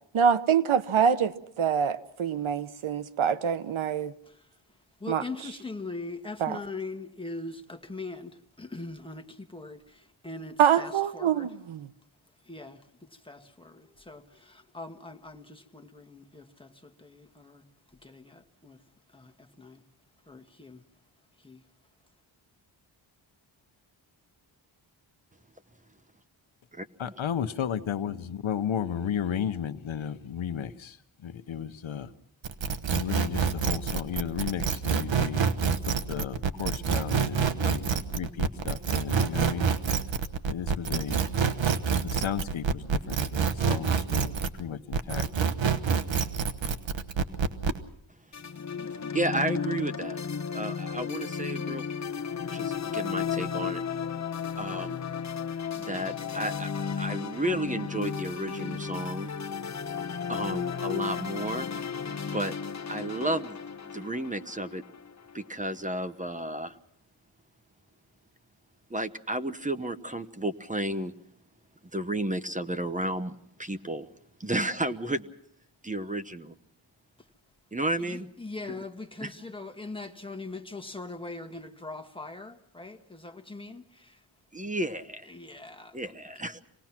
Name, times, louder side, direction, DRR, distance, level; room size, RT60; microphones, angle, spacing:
voice 1, 0.1-4.1 5.1-5.5 6.4-6.6 10.6-11.9, right 7 dB, 85° right, 1.1 m, -25 dB
voice 2, 5.0-11.5 12.5-12.8 13.2-17.6 18.0-18.8 19.1-19.3 19.6-19.8 20.3-20.8 21.4-21.6 78.1-84.2 85.3-85.9, left 3 dB, 10° left, 1.6 m, -41 dB
voice 3, 27.0-31.0 31.2-32.1 32.9-39.7 40.4-41.2 42.0-45.3, left 9 dB, 75° left, 1.0 m, -34 dB
sound 1, 32.4-44.6 44.9-47.8, right 6 dB, 70° right, 1.3 m, -27 dB
sound 2, 48.3-65.7, left 6 dB, 35° left, 1.0 m, -34 dB
voice 4, 49.1-50.2 50.5-51.9 52.5-53.8 54.6-55.0 55.7-59.3 60.3-61.7 62.3-62.5 62.9-63.6 63.9-64.8 65.3-66.8 68.9-71.1 71.9-74.1 74.4-75.3 75.8-76.5 77.7-78.3 78.6-78.8 79.2-79.5 84.5-85.3 85.9-86.6, right 1 dB, 15° right, 1.0 m, -32 dB
26.0 x 19.0 x 6.0 m
wide cardioid pair, 105°, 47 cm